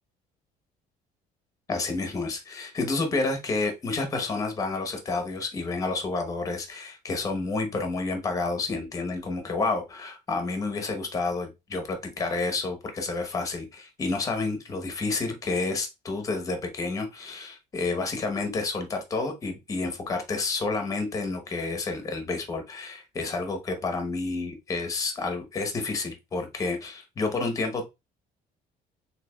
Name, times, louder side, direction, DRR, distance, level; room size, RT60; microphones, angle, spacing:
voice 1, 1.7-27.9, left 3 dB, 20° left, 5 dB, 0.9 m, -30 dB
6.5 x 2.8 x 2.2 m, 0.24 s
cardioid pair, 175°, 16 cm